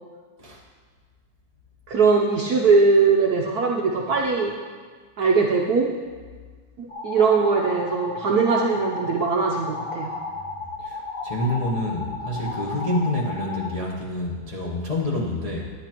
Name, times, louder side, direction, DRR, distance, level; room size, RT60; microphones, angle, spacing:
voice 1, 1.9-4.6 5.2-5.9 6.8-10.2, right 4 dB, 70° right, 0 dB, 0.9 m, -20 dB
sound 1, 6.9-13.7, left 3 dB, 90° left, 0.4 m, -34 dB
voice 2, 10.3-15.7, left 1 dB, 35° left, -5 dB, 0.5 m, -28 dB
10.5 x 9.9 x 2.9 m, 1.5 s
omnidirectional pair, 2.3 m